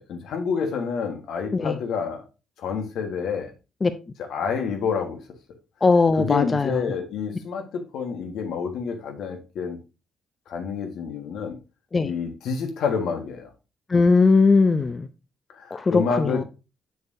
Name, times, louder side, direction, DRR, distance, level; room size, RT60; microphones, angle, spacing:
voice 1, 0.0-2.2 2.6-3.5 4.3-5.2 6.2-9.8 10.5-11.6 12.0-13.5 15.6-16.4, left 6 dB, 80° left, 1.5 m, -28 dB
voice 2, 5.8-6.9 11.9-12.1 13.9-15.1 15.7-16.4, left 4 dB, 30° left, 0.5 m, -19 dB
6.8 x 6.6 x 2.7 m
cardioid pair, 90°, 0 cm